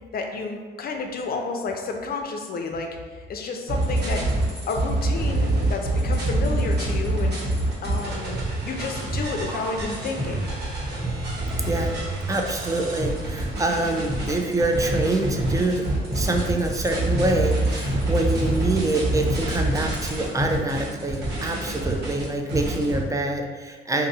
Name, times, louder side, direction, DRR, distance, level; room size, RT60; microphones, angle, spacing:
voice 1, 0.1-4.3 4.7-7.4 7.8-8.4 8.6-10.5 14.7-14.8, left 3 dB, 50° left, 3 dB, 0.5 m, -31 dB
sound 1, 3.7-23.0, right 1 dB, 55° right, 1.4 m, -26 dB
voice 2, 11.7-12.0 12.3-15.8 16.1-24.1, right 2 dB, 15° right, 3 dB, 0.4 m, -26 dB
2.6 x 2.6 x 4.1 m, 1.5 s
cardioid pair, 90°, 20 cm